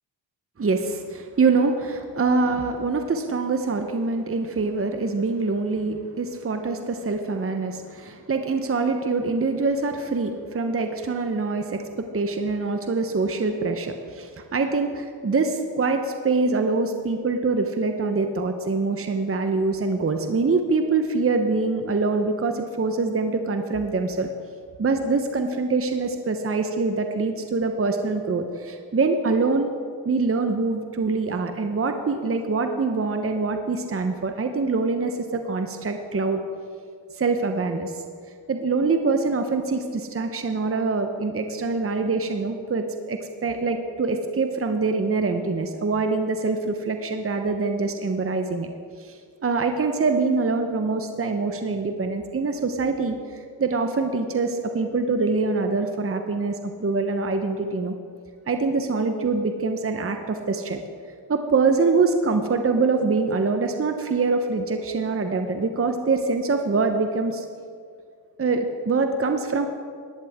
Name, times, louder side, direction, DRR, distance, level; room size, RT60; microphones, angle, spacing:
voice 1, 0.6-24.3 24.8-29.7 30.0-36.4 37.2-37.9 38.5-48.7 49.0-49.2 49.4-53.2 53.6-57.9 58.5-60.8 61.3-67.4 68.4-69.7, right 3 dB, 30° right, 6 dB, 1.0 m, -24 dB
17.0 x 11.0 x 3.7 m, 2.2 s
supercardioid pair, 60°, 46 cm